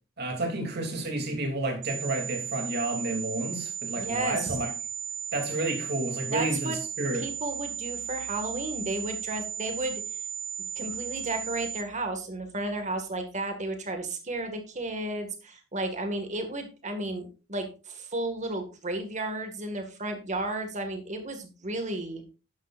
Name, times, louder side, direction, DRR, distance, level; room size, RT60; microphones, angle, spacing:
voice 1, 0.2-4.7 5.3-7.3, right 2 dB, 55° right, 3.0 m, -31 dB
sound 1, 1.8-11.8, right 7 dB, 80° right, 1.4 m, -36 dB
voice 2, 4.0-4.6 6.3-6.8 7.1-10.0 10.8-22.2, right 2 dB, 40° right, 2.0 m, -33 dB
11.0 x 11.0 x 2.6 m
head